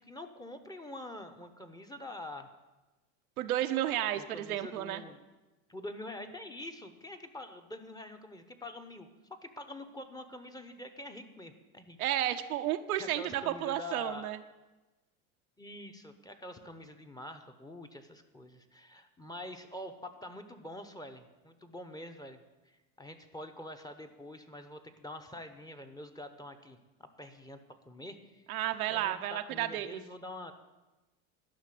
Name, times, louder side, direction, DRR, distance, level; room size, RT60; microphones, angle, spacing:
voice 1, 0.0-2.5 4.1-5.2 5.7-12.0 12.9-14.3 15.6-22.4 22.7-27.6 27.9-28.4 28.9-30.5, left 1 dB, 10° left, 6 dB, 0.9 m, -46 dB
voice 2, 3.4-5.0 12.0-14.4 28.5-30.0, right 12 dB, 90° right, 7 dB, 0.8 m, -32 dB
11.5 x 5.9 x 7.5 m, 1.1 s
hypercardioid pair, 95°, 42 cm